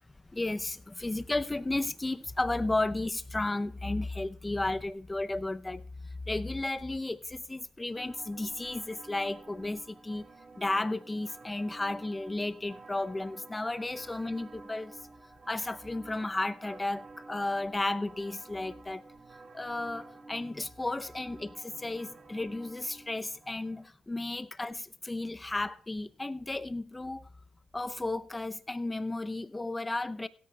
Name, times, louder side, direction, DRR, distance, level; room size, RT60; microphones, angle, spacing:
voice 1, 0.3-5.8 6.3-10.3 10.6-15.0 15.5-19.0 19.5-27.3 27.7-30.3, left 2 dB, 15° left, 0.6 m, -33 dB
sound 1, 7.9-23.9, right 3 dB, 35° right, 1.9 m, -51 dB
16.5 x 13.0 x 2.3 m
cardioid pair, 90°, 0 cm